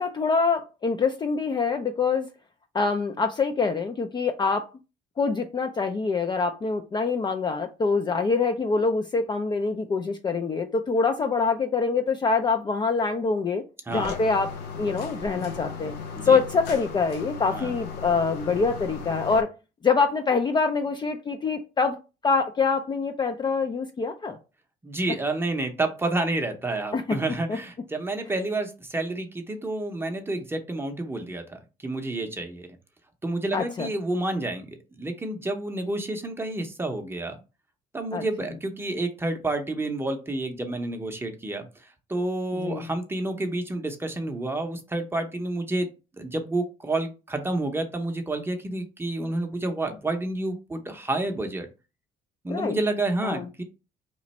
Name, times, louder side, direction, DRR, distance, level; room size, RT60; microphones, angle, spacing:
voice 1, 0.0-2.3 2.7-4.7 5.2-13.6 13.9-14.5 14.8-15.9 16.2-19.5 19.8-22.0 22.2-24.4 26.9-27.2 27.5-27.6 33.5-33.9 38.1-38.2 42.5-42.9 52.5-52.8 53.2-53.5, left 4 dB, 25° left, 0.4 m, -25 dB
sound 1, 13.9-19.4, left 6 dB, 85° left, 0.7 m, -36 dB
voice 2, 24.8-32.8 33.2-37.4 37.9-45.9 46.2-51.7 52.4-53.6, right 2 dB, 15° right, 0.7 m, -29 dB
3.0 x 2.5 x 4.2 m
cardioid pair, 110°, 17 cm